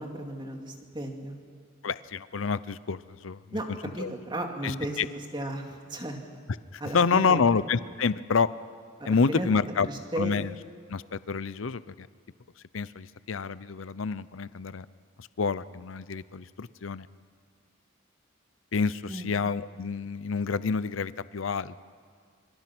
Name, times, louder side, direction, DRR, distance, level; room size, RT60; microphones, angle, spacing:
voice 1, 0.0-1.4 3.5-3.6 4.0-5.0 5.3-6.2 6.8-7.4 9.0-9.5 9.9-10.3 19.1-19.3, right 1 dB, 25° right, 2 dB, 2.7 m, -34 dB
voice 2, 1.8-3.6 4.0-4.1 4.6-5.1 6.7-8.5 9.1-9.9 10.2-10.5 10.9-12.1 12.7-14.8 15.2-17.1 18.7-21.8, left 5 dB, 75° left, 16 dB, 0.6 m, -28 dB
26.5 x 24.5 x 6.2 m, 2.1 s
head